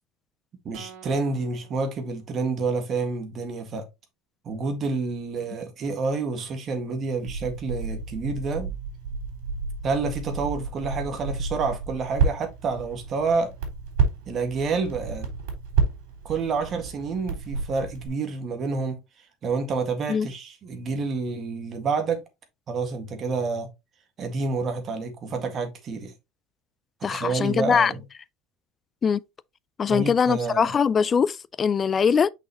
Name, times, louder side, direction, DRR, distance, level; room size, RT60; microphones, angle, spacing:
voice 1, 0.7-3.9 4.5-8.7 9.8-13.5 14.3-15.3 16.2-19.0 19.4-22.2 22.7-23.7 24.2-26.1 27.1-28.0 29.9-30.7, right 4 dB, 30° right, 1.7 m, -28 dB
sound 1, 0.7-2.8, right 6 dB, 65° right, 1.9 m, -50 dB
Crackle, 7.2-18.1, right 5 dB, 80° right, 4.0 m, -30 dB
voice 2, 27.0-27.9 29.0-29.2 29.8-32.3, left 6 dB, 20° left, 0.3 m, -22 dB
6.2 x 5.8 x 2.9 m
cardioid pair, 160°, 0 cm